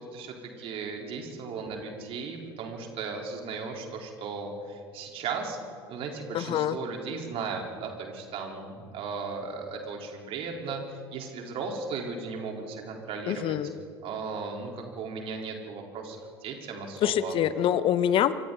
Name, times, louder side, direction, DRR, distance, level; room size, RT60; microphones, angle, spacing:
voice 1, 0.0-5.6 5.9-13.6 14.0-17.4, right 4 dB, 45° right, 1 dB, 4.2 m, -36 dB
voice 2, 6.3-6.8 13.3-13.7 17.0-18.3, left 10 dB, 40° left, 15 dB, 1.0 m, -25 dB
27.0 x 25.0 x 4.1 m, 2.2 s
figure-of-eight pair, 65°, 13 cm